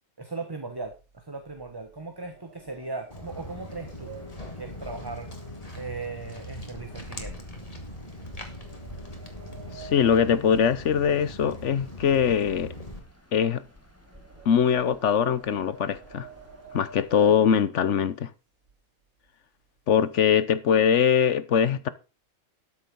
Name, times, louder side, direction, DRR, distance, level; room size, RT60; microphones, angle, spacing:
voice 1, 0.2-4.1 4.6-5.3 5.7-7.4, right 3 dB, 20° right, 1.2 m, -38 dB
sound 1, 0.7-6.1 6.4-6.7 7.2-7.4 8.2-11.5 11.8-18.0 18.6-18.7 19.0-19.3 19.6-20.3, right 5 dB, 85° right, 2.8 m, -50 dB
Walk footsteps, 3.1-13.0, left 1 dB, 25° left, 2.2 m, -41 dB
sound 2, 3.2-17.4, left 1 dB, 10° left, 2.2 m, -51 dB
voice 2, 9.7-12.7 13.3-13.6 14.4-16.3 16.7-18.3 19.9-21.9, left 7 dB, 60° left, 1.1 m, -22 dB
13.0 x 7.1 x 5.4 m
omnidirectional pair, 1.5 m